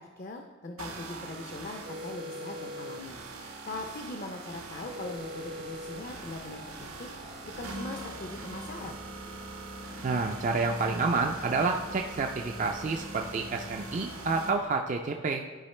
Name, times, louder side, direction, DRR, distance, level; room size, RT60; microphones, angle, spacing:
voice 1, 0.0-7.1 7.5-9.0, left 2 dB, 40° left, 4 dB, 0.4 m, -41 dB
sound 1, 0.8-14.5, right 2 dB, 85° right, 1.0 m, -42 dB
sound 2, 4.7-14.7, left 1 dB, 75° left, 1.3 m, -51 dB
voice 2, 10.0-15.5, right 4 dB, 35° right, 3 dB, 0.3 m, -29 dB
11.5 x 4.9 x 3.2 m, 1.3 s
head